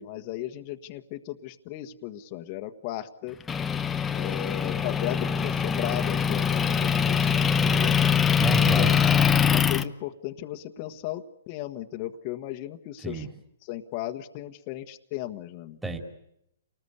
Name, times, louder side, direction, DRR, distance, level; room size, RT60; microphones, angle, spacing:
voice 1, 0.0-3.4 4.1-7.9 8.5-13.3 13.6-15.8, left 14 dB, 35° left, 5 dB, 1.4 m, -36 dB
Motor vehicle (road) / Engine, 3.5-9.8, left 7 dB, 10° left, 1.0 m, -23 dB
voice 2, 8.4-9.1 13.0-13.3 15.8-16.0, right 3 dB, 5° right, 3 dB, 3.0 m, -30 dB
29.0 x 20.0 x 8.1 m, 0.79 s
hypercardioid pair, 145°, 0 cm